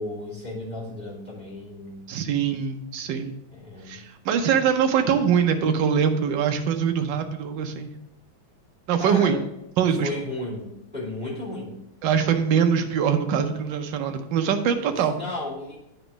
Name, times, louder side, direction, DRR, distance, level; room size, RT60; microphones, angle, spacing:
voice 1, 0.0-2.0 3.5-4.0 9.0-9.4 10.0-11.8 15.1-15.8, left 2 dB, 5° right, -5 dB, 3.2 m, -34 dB
voice 2, 2.1-3.3 3.9-7.9 8.9-9.4 9.8-10.1 12.0-15.2, right 7 dB, 70° right, 6 dB, 1.4 m, -23 dB
9.0 x 4.0 x 5.1 m, 0.84 s
omnidirectional pair, 2.2 m